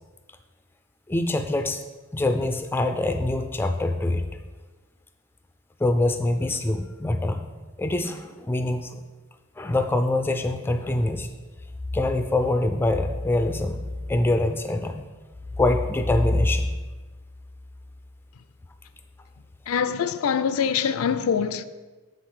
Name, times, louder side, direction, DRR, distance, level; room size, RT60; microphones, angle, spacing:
voice 1, 1.1-1.8 2.1-4.3 5.8-7.4 7.8-9.0 9.6-11.3 11.9-13.8 14.1-15.0 15.6-16.7, left 2 dB, 10° left, 0.3 m, -24 dB
voice 2, 19.7-21.6, left 7 dB, 85° left, 0.4 m, -24 dB
7.4 x 3.9 x 6.4 m
head